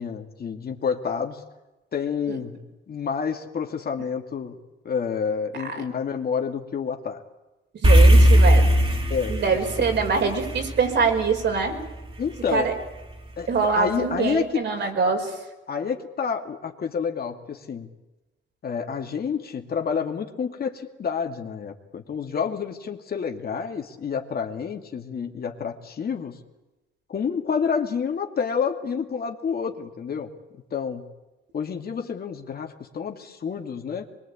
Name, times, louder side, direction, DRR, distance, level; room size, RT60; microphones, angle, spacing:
voice 1, 0.0-1.4 1.9-2.6 2.9-4.6 4.8-7.2 9.1-9.4 12.2-12.7 13.4-14.6 15.7-17.9 18.6-26.4 27.1-30.3 30.7-31.1 31.5-34.1, left 6 dB, 50° left, 4 dB, 2.4 m, -29 dB
sound 1, 7.8-12.3, equal, 25° right, 3.5 m, -18 dB
voice 2, 7.8-8.7 9.3-11.8 12.5-12.7 13.5-15.3, right 5 dB, 60° right, 3 dB, 5.5 m, -24 dB
23.5 x 22.5 x 8.6 m, 1.1 s
cardioid pair, 90°, 20 cm